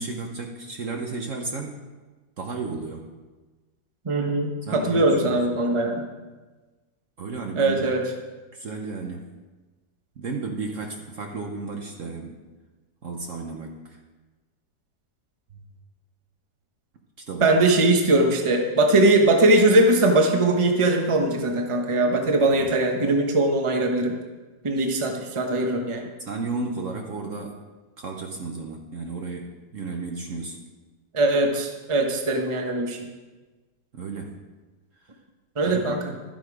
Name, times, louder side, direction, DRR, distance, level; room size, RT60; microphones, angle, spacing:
voice 1, 0.0-1.8 2.4-3.1 4.6-5.7 7.2-7.9 8.5-9.3 10.2-12.4 13.0-14.0 15.5-15.6 17.3-17.5 18.0-18.2 22.5-22.8 26.2-27.6 28.0-30.6 33.9-34.3 35.7-36.0, right 3 dB, 55° right, 2 dB, 1.2 m, -33 dB
voice 2, 4.0-6.0 7.5-8.0 17.4-24.1 24.6-26.0 31.1-33.1 35.6-36.0, right 2 dB, 20° right, 2 dB, 1.0 m, -21 dB
12.0 x 7.7 x 4.9 m, 1.3 s
omnidirectional pair, 1.9 m